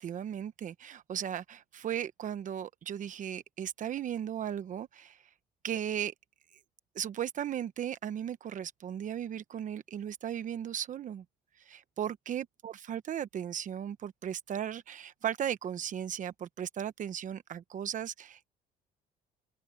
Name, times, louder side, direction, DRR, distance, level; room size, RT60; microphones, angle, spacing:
voice 1, 0.0-5.2 5.6-6.1 6.9-11.2 11.6-18.5, right 9 dB, 50° right, 1.0 m, -36 dB
open air
cardioid pair, 110°, 17 cm